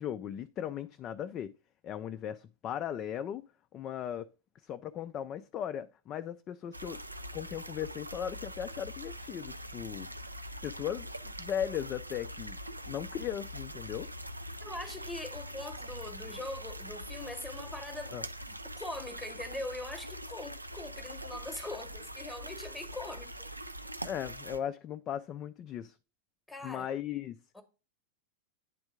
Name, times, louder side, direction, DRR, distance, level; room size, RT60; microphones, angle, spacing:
voice 1, 0.0-1.5 1.8-3.4 3.7-4.3 4.6-7.0 7.3-10.1 10.6-12.6 12.9-14.1 18.1-18.2 24.0-26.0 26.6-27.4, left 9 dB, 30° left, 0.3 m, -37 dB
sound 1, 6.7-24.6, equal, 85° right, 0.4 m, -43 dB
voice 2, 14.6-18.2 18.5-23.5 26.5-26.9 27.5-27.6, left 2 dB, 5° left, 1.0 m, -42 dB
9.1 x 3.5 x 4.8 m
figure-of-eight pair, 90°, 0 cm